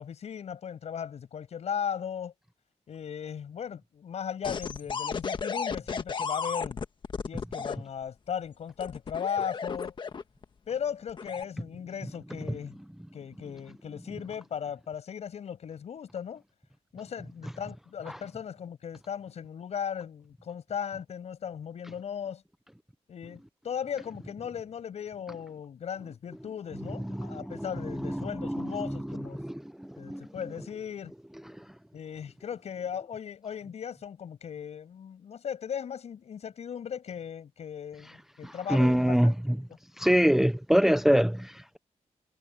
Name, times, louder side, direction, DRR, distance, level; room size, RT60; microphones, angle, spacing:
voice 1, 0.0-2.3 2.9-6.8 7.3-9.9 10.7-12.7 13.1-16.4 16.9-22.4 23.1-29.4 30.0-31.1 31.9-39.3, left 8 dB, 70° left, 6.5 m, -37 dB
sound 1, 4.4-7.8 8.8-10.4 11.1-11.4, left 5 dB, 45° left, 1.4 m, -33 dB
voice 2, 27.1-30.2 38.4-39.6 40.0-41.8, equal, 5° right, 0.6 m, -26 dB
wide cardioid pair, 150°, 11 cm